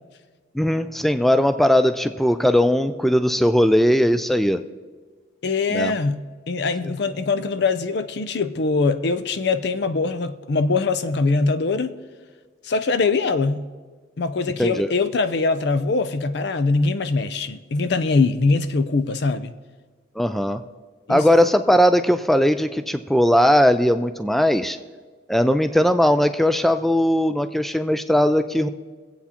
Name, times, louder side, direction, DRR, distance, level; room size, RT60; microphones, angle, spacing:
voice 1, 0.5-4.6 5.7-6.0 14.6-14.9 20.2-20.6 21.1-24.8 25.3-28.7, equal, ahead, 0.3 m, -19 dB
voice 2, 5.4-6.2 6.5-11.9 12.6-13.6 14.2-19.5 21.1-21.3, left 3 dB, 60° left, 0.5 m, -22 dB
23.0 x 8.2 x 2.9 m
head